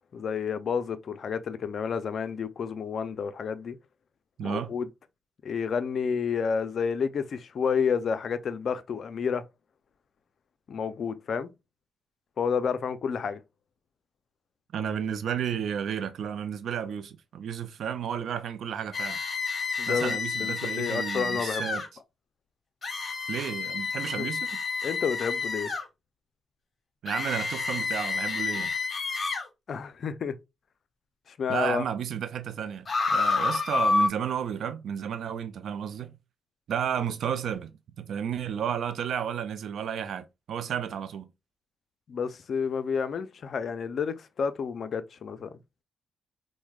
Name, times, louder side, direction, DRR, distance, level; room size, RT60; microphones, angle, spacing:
voice 1, 0.1-3.8 4.4-4.9 5.4-9.4 10.7-11.5 12.4-13.4 19.8-21.8 24.2-24.3 24.8-25.7 29.7-30.4 31.3-31.8 37.0-37.1 42.1-45.5, left 6 dB, 65° left, 0.4 m, -30 dB
voice 2, 4.4-4.8 14.7-19.2 19.9-21.8 23.3-24.6 27.0-28.7 31.5-36.2 36.7-41.3, right 8 dB, 75° right, 0.4 m, -32 dB
sound 1, 18.9-21.9 22.8-25.8 27.1-29.5 32.9-34.1, left 4 dB, 45° left, 0.9 m, -29 dB
4.4 x 2.1 x 2.3 m
supercardioid pair, 60°, 0 cm